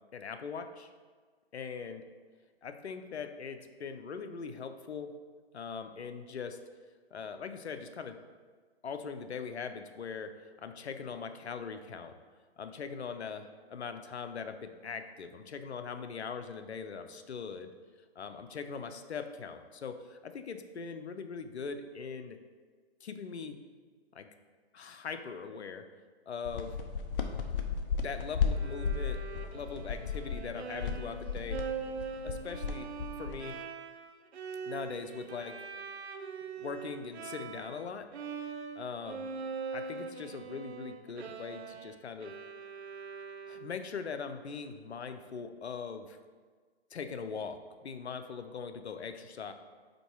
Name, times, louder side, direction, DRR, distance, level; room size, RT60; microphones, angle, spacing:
voice 1, 0.1-0.9 1.5-2.0 2.6-5.1 5.5-6.6 7.1-8.2 8.8-12.1 12.6-17.7 18.2-22.4 23.0-23.6 24.1-24.3 24.7-25.9 26.3-26.8 28.0-29.2 29.5-31.6 32.2-32.9 33.2-33.5 34.7-35.6 36.6-38.1 38.8-39.3 39.7-42.3 43.5-46.2 46.9-49.5, left 5 dB, 90° left, 8 dB, 0.7 m, -41 dB
sound 1, 26.4-33.6, left 5 dB, 55° left, 0.8 m, -35 dB
Bowed string instrument, 28.5-37.9 38.1-44.0, right 6 dB, 80° right, 0.6 m, -42 dB
5.3 x 4.7 x 4.5 m, 1.5 s
hypercardioid pair, 145°, 32 cm